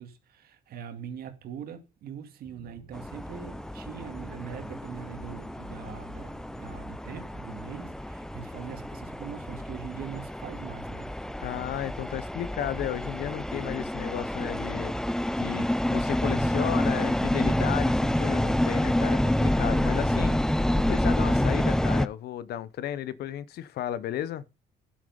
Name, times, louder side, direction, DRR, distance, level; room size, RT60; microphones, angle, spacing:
voice 1, 0.0-11.1, right 8 dB, 65° right, 2.3 m, -42 dB
sound 1, 2.4-20.7, right 4 dB, 25° right, 1.3 m, -52 dB
sound 2, 2.9-22.1, left 1 dB, 5° left, 0.5 m, -28 dB
voice 2, 11.4-15.0 15.3-20.4 20.8-24.5, left 12 dB, 70° left, 0.8 m, -34 dB
10.5 x 7.3 x 5.5 m
cardioid pair, 110°, 17 cm